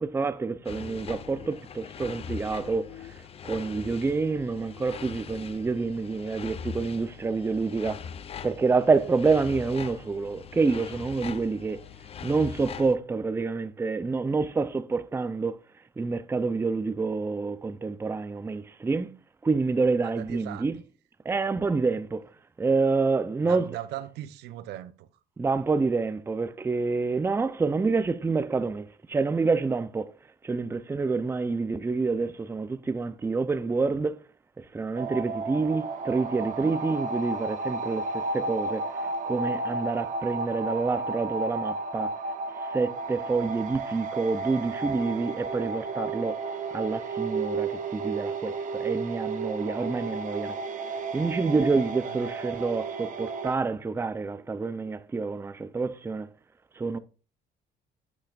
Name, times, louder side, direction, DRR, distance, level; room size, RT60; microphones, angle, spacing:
voice 1, 0.0-3.0 3.4-8.0 8.4-11.8 12.2-15.6 16.0-19.1 19.4-20.8 21.3-22.2 22.6-23.7 25.4-30.1 30.4-34.2 34.7-38.0 38.3-38.9 39.2-42.1 42.7-46.4 46.7-50.6 51.1-56.3 56.8-57.0, right 4 dB, 15° right, 0.5 m, -27 dB
sound 1, 0.7-13.0, left 7 dB, 35° left, 0.5 m, -41 dB
voice 2, 20.0-20.8 23.4-25.1 52.0-52.3, right 13 dB, 80° right, 0.7 m, -39 dB
sound 2, 35.0-53.6, right 3 dB, 50° right, 1.0 m, -33 dB
8.4 x 8.4 x 2.4 m
cardioid pair, 110°, 17 cm